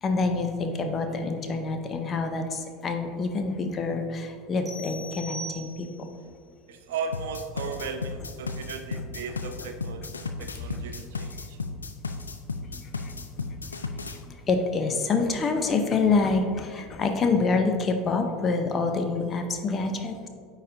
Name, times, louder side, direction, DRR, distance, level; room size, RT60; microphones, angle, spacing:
voice 1, 0.0-5.9 12.7-13.4 14.5-20.3, left 4 dB, 30° left, 6 dB, 0.7 m, -27 dB
sound 1, 4.7-6.2, right 2 dB, 20° right, 1.0 m, -40 dB
voice 2, 6.7-10.1 10.4-11.6, right 5 dB, 65° right, 6 dB, 0.5 m, -36 dB
sound 2, 7.1-14.2, left 4 dB, 85° left, 0.3 m, -34 dB
9.1 x 4.1 x 2.6 m, 2.1 s
figure-of-eight pair, 75°, 0 cm